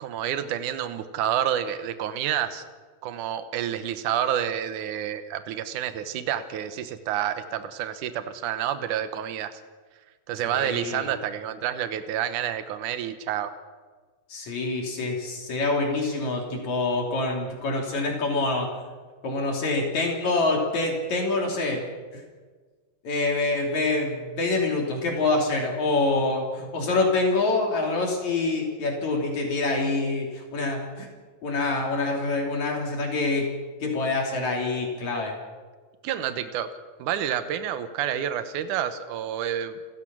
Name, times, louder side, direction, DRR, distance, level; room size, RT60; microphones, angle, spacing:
voice 1, 0.0-2.7 3.0-9.6 10.3-13.5 36.0-36.7 37.0-39.8, right 10 dB, 80° right, 10 dB, 2.5 m, -29 dB
voice 2, 10.4-11.1 14.3-18.7 19.2-21.8 22.1-22.2 23.0-31.1 31.4-33.5 33.8-35.4, left 3 dB, 65° left, 0 dB, 4.3 m, -26 dB
28.5 x 15.0 x 6.2 m, 1.4 s
omnidirectional pair, 3.6 m